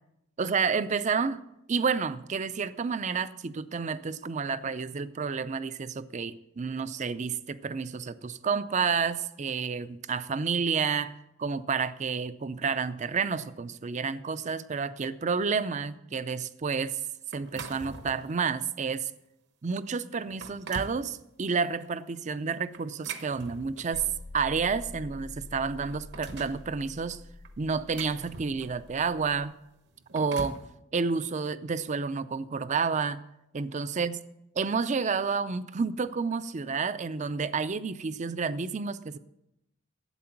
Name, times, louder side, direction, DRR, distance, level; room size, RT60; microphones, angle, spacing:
voice 1, 0.4-1.4 1.7-11.1 11.4-17.0 17.3-19.1 19.6-24.1 24.3-27.2 27.6-29.5 30.1-30.6 30.9-33.2 33.5-34.1 34.6-39.2, right 5 dB, 35° right, 15 dB, 0.5 m, -30 dB
sound 1, 17.3-18.4 18.9-19.1 19.7-19.8 20.2-21.0 22.7-24.1 25.1-25.2 25.5-26.6 27.5-28.9 29.9-30.7, right 3 dB, 60° right, 1.0 m, -42 dB
sound 2, 23.9-29.5, left 2 dB, 80° left, 1.4 m, -46 dB
12.5 x 8.6 x 5.8 m, 0.84 s
head